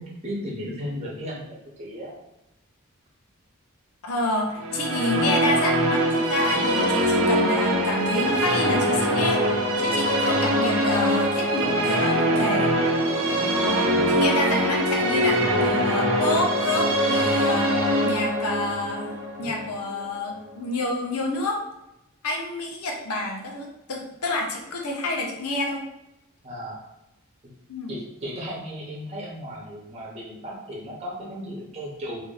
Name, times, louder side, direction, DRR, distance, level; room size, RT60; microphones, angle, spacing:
voice 1, 0.0-2.1 26.4-26.8 27.9-32.2, equal, 30° right, -4 dB, 0.9 m, -35 dB
voice 2, 4.0-12.7 13.6-17.7 18.0-19.1 19.4-21.6 22.2-25.8 27.7-27.9, left 2 dB, 85° left, 0 dB, 0.8 m, -28 dB
sound 1, 4.6-20.6, equal, 65° right, 0.7 m, -23 dB
2.8 x 2.7 x 3.9 m, 0.89 s
head